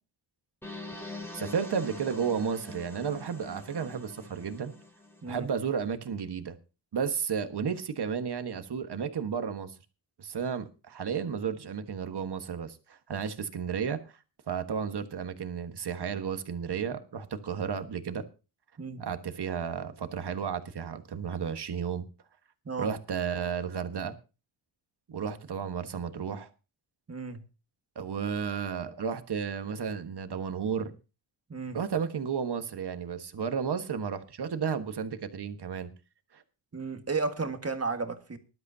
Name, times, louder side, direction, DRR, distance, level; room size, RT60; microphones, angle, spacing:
sound 1, 0.6-5.5, left 2 dB, 5° left, 3.1 m, -44 dB
voice 1, 1.3-4.7 5.3-6.5 6.9-9.8 10.2-14.0 14.5-18.2 19.0-22.0 22.8-24.1 25.1-26.5 27.9-30.9 31.7-35.9 36.3-36.4, right 7 dB, 55° right, 1.5 m, -33 dB
voice 2, 27.1-27.4 31.5-31.8 36.7-38.4, right 4 dB, 30° right, 1.7 m, -33 dB
19.5 x 11.5 x 2.8 m
cardioid pair, 90°, 48 cm